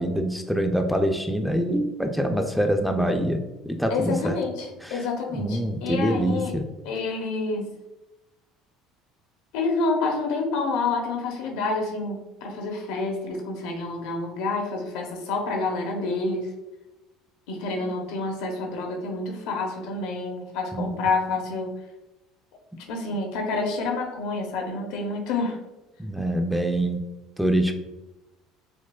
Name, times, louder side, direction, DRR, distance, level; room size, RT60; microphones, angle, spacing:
voice 1, 0.0-4.3 4.8-5.0 5.3-6.6 17.8-17.9 20.7-20.9 26.0-27.0 27.4-27.7, right 1 dB, ahead, 4 dB, 0.3 m, -25 dB
voice 2, 3.9-6.5 6.8-7.7 9.5-16.5 17.5-21.7 22.8-25.6, left 3 dB, 75° left, 2 dB, 0.7 m, -28 dB
4.4 x 2.1 x 2.3 m, 1.0 s
supercardioid pair, 85°, 0 cm